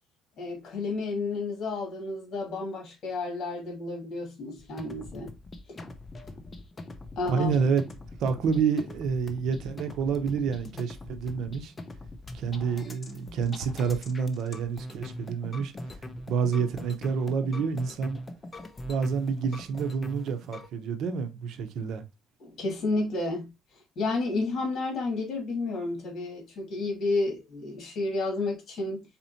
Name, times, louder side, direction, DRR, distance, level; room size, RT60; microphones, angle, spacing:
voice 1, 0.4-5.3 5.7-5.8 7.2-7.5 22.4-23.5 24.0-29.0, left 3 dB, 55° left, 2.4 m, -31 dB
sound 1, 4.6-20.7, left 1 dB, 20° left, 0.6 m, -42 dB
voice 2, 7.3-7.8 8.2-11.7 12.3-16.0 16.3-18.2 18.8-22.0, right 6 dB, 65° right, 0.8 m, -28 dB
4.3 x 4.1 x 2.7 m
cardioid pair, 125°, 0 cm